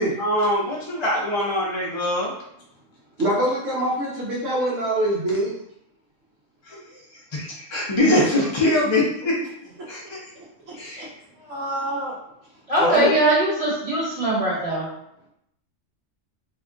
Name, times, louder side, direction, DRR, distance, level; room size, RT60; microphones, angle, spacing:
voice 1, 0.2-2.3 6.7-6.8 7.3-9.3 9.9-10.2 10.7-11.1, left 1 dB, 40° left, -5 dB, 0.4 m, -23 dB
voice 2, 3.2-5.5 10.0-10.1 10.3-11.1 11.4-12.1 12.8-13.1, right 1 dB, 75° right, -8 dB, 1.2 m, -25 dB
voice 3, 12.7-14.8, right 1 dB, 30° right, -7 dB, 1.3 m, -21 dB
2.9 x 2.3 x 3.7 m, 0.78 s
omnidirectional pair, 1.3 m